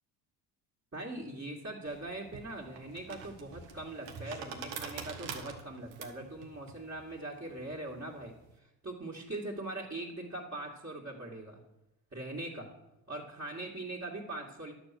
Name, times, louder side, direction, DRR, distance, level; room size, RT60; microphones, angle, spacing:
voice 1, 0.9-11.6 12.1-12.7 13.1-14.7, right 2 dB, 30° right, -5 dB, 2.6 m, -41 dB
sound 1, 1.8-8.5, right 6 dB, 75° right, 1.5 m, -45 dB
11.0 x 7.1 x 6.2 m, 0.92 s
hypercardioid pair, 55°, 47 cm